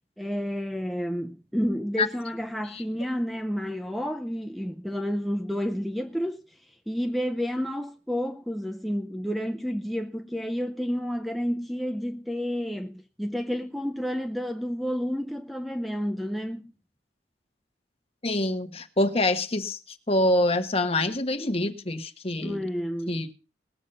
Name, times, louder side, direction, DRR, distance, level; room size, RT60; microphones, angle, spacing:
voice 1, 0.2-6.4 6.7-16.7 22.4-23.2, equal, ahead, 0.6 m, -30 dB
voice 2, 18.2-19.8 20.1-22.6 23.1-23.3, left 1 dB, 35° left, 1.3 m, -25 dB
19.5 x 7.3 x 5.4 m
head